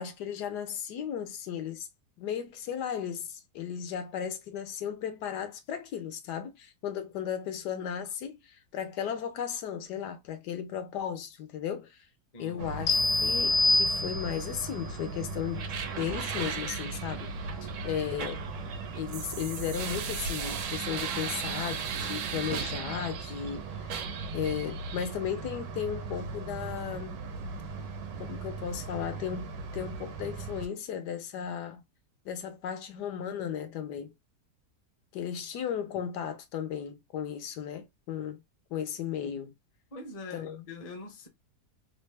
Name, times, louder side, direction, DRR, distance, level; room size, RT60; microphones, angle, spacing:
voice 1, 0.0-1.9 2.2-12.1 12.4-17.3 17.6-18.4 18.9-23.9 24.3-27.2 28.2-31.8 32.2-34.1 35.1-38.4 38.7-39.5 40.3-40.7, left 8 dB, 75° left, 1.3 m, -35 dB
voice 2, 12.3-12.7 39.9-41.3, left 3 dB, 35° left, 0.6 m, -43 dB
sound 1, 12.6-30.7, right 3 dB, 90° right, 1.4 m, -39 dB
sound 2, 12.9-14.6, left 2 dB, 60° left, 1.0 m, -25 dB
sound 3, 15.5-23.5 23.9-25.1, right 7 dB, 70° right, 0.8 m, -38 dB
3.4 x 2.1 x 3.3 m
omnidirectional pair, 1.8 m